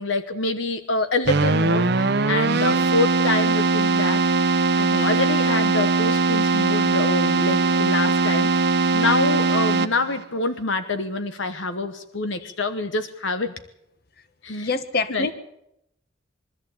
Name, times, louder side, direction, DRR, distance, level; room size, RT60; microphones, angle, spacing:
voice 1, 0.0-13.5 14.4-14.7 15.1-15.3, left 2 dB, 70° left, 9 dB, 1.2 m, -26 dB
Keyboard (musical), 1.3-10.2, right 3 dB, 55° right, 0.9 m, -20 dB
voice 2, 14.5-15.3, left 3 dB, 50° left, 11 dB, 1.4 m, -27 dB
23.0 x 13.5 x 8.5 m, 0.80 s
head